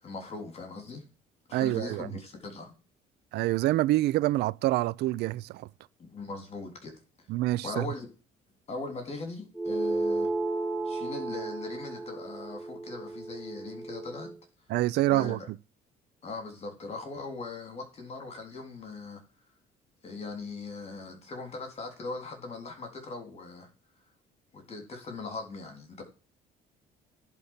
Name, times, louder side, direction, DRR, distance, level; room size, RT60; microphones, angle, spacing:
voice 1, 0.0-1.0 1.5-2.7 6.0-7.0 7.6-8.1 8.7-10.3 10.9-14.3 15.1-15.5 16.2-19.2 20.0-23.7 24.5-26.0, left 3 dB, 40° left, 3.6 m, -40 dB
voice 2, 1.5-2.1 3.3-5.7 7.3-7.9 14.7-15.4, right 16 dB, 80° right, 0.5 m, -26 dB
sound 1, 9.5-14.4, right 2 dB, 5° left, 2.8 m, -33 dB
10.5 x 4.3 x 7.4 m
cardioid pair, 110°, 17 cm